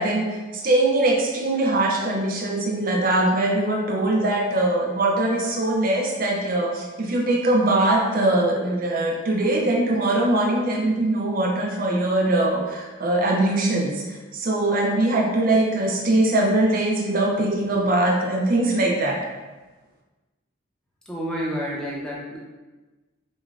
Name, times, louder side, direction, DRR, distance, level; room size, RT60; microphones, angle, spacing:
voice 1, 0.0-19.2, right 2 dB, 45° right, -1 dB, 0.4 m, -22 dB
voice 2, 21.1-22.4, equal, 5° left, -5 dB, 0.6 m, -29 dB
5.0 x 2.1 x 2.4 m, 1.2 s
head